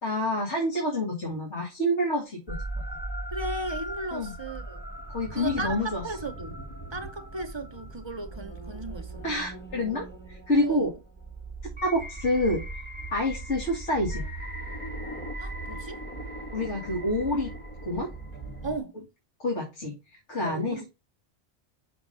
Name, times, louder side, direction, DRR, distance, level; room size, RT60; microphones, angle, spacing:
voice 1, 0.0-2.6 4.1-4.3 5.1-6.0 9.2-10.9 11.8-12.6 13.1-14.2 16.5-17.5 17.8-18.1 19.4-20.9, left 1 dB, 85° left, 2.4 m, -28 dB
sound 1, 2.5-18.8, right 2 dB, 10° left, 1.1 m, -38 dB
voice 2, 3.3-4.8 5.3-6.6 6.9-9.4 10.6-10.9 15.4-16.0 18.6-19.0 20.4-20.9, right 2 dB, 30° right, 0.7 m, -36 dB
6.1 x 4.5 x 5.4 m
omnidirectional pair, 1.2 m